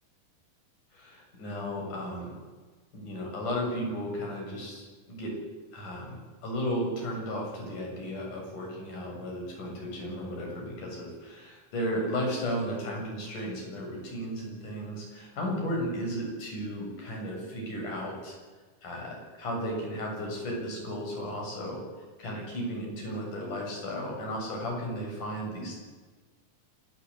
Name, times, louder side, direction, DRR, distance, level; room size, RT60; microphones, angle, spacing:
voice 1, 0.9-2.3 2.9-5.4 5.7-18.4 18.8-21.8 22.2-25.7, equal, 55° left, -1 dB, 9.1 m, -34 dB
26.5 x 14.0 x 10.0 m, 1.3 s
omnidirectional pair, 4.2 m